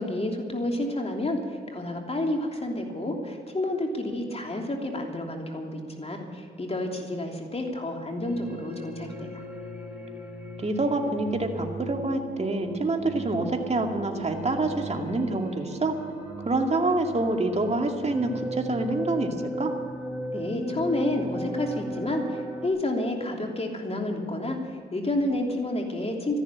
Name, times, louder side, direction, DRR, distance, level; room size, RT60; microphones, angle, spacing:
voice 1, 0.0-9.3 20.3-26.4, left 1 dB, 30° left, 2 dB, 3.1 m, -30 dB
sound 1, 8.2-22.7, right 1 dB, 5° right, 4.2 m, -37 dB
voice 2, 10.6-16.0 16.4-19.8, right 2 dB, 30° right, 3 dB, 2.4 m, -27 dB
14.0 x 11.5 x 8.6 m, 2.2 s
supercardioid pair, 55°, 21 cm